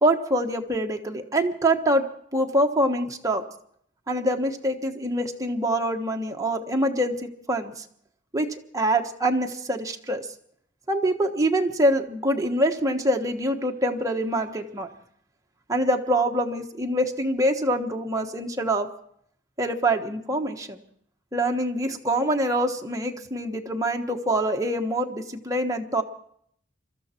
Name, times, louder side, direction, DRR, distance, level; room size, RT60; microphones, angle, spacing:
voice 1, 0.0-2.0 2.3-3.4 4.1-7.8 8.3-8.5 8.7-10.2 10.9-14.9 15.7-18.9 19.6-20.8 21.3-26.0, right 1 dB, 20° right, 3 dB, 1.3 m, -25 dB
23.5 x 13.5 x 4.5 m, 0.66 s
head